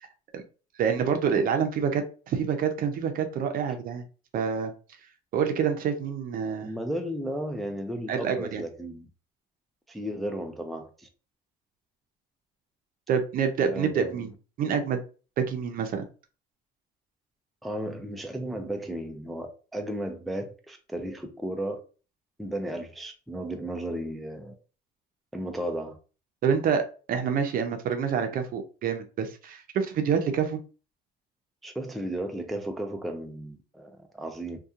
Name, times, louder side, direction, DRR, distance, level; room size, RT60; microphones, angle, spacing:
voice 1, 0.8-4.0 4.3-4.7 5.3-6.7 8.1-8.6 13.1-14.3 14.6-15.0 15.4-16.1 26.4-30.6, right 7 dB, 55° right, 0.5 m, -27 dB
voice 2, 6.6-9.1 9.9-11.1 13.7-14.2 17.6-21.8 22.4-24.5 25.3-26.0 31.6-34.6, right 1 dB, ahead, 0.3 m, -34 dB
2.8 x 2.2 x 2.4 m
cardioid pair, 110°, 17 cm